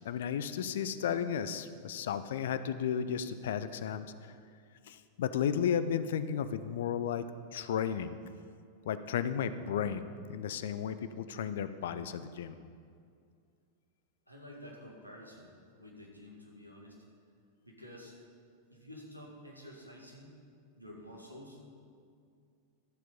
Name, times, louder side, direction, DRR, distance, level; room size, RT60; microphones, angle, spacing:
voice 1, 0.0-4.4 4.8-7.3 7.5-8.2 8.9-12.5, left 8 dB, 60° left, 12 dB, 0.5 m, -34 dB
voice 2, 14.3-17.0 17.6-18.1 18.7-20.4 20.8-21.6, left 1 dB, 90° right, -2 dB, 1.9 m, -50 dB
12.5 x 7.5 x 5.2 m, 2.3 s
figure-of-eight pair, 90°, 0 cm